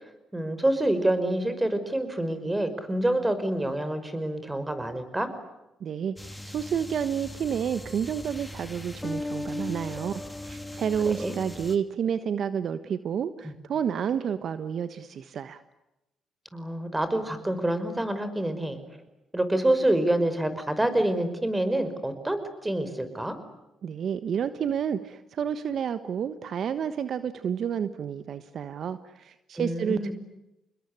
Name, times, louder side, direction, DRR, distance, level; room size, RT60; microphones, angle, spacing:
voice 1, 0.3-5.3 11.0-11.4 13.4-13.5 16.5-18.8 19.3-23.4 29.6-30.1, right 1 dB, 15° right, 10 dB, 5.5 m, -27 dB
voice 2, 5.8-15.6 23.8-30.1, right 8 dB, 60° right, 12 dB, 1.3 m, -30 dB
sound 1, 6.2-11.8, left 1 dB, 10° left, 3.0 m, -38 dB
27.5 x 21.0 x 10.0 m, 0.93 s
supercardioid pair, 60°, 0 cm